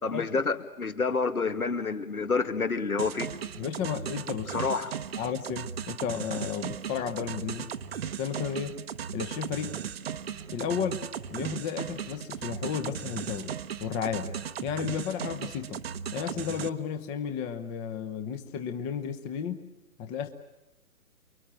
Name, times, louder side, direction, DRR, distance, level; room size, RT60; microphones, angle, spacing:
voice 1, 0.0-3.3 4.5-4.9, left 4 dB, 75° left, 9 dB, 2.3 m, -28 dB
sound 1, 3.0-16.7, right 8 dB, 45° right, 1.1 m, -37 dB
voice 2, 3.6-4.5 5.2-7.7 8.2-8.8 9.1-9.8 10.5-11.0 11.3-14.3 14.6-15.8 16.1-19.6 20.0-20.3, left 7 dB, 15° left, 7 dB, 0.9 m, -33 dB
29.0 x 22.5 x 9.0 m, 0.98 s
figure-of-eight pair, 135°, 44 cm